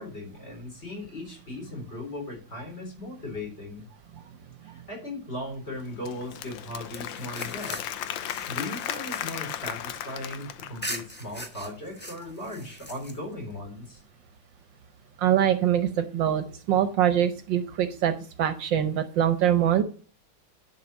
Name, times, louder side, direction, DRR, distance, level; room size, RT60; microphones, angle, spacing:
voice 1, 0.0-3.8 4.6-7.8 8.5-14.0, left 1 dB, 30° left, 1 dB, 4.1 m, -38 dB
Applause / Crowd, 5.8-11.2, left 11 dB, 75° left, 1.4 m, -36 dB
sound 1, 6.9-10.3 10.8-13.5, equal, 5° left, 0.9 m, -41 dB
voice 2, 15.2-18.1 18.4-19.8, right 10 dB, 70° right, 10 dB, 1.4 m, -23 dB
10.5 x 4.7 x 6.2 m, 0.39 s
omnidirectional pair, 2.2 m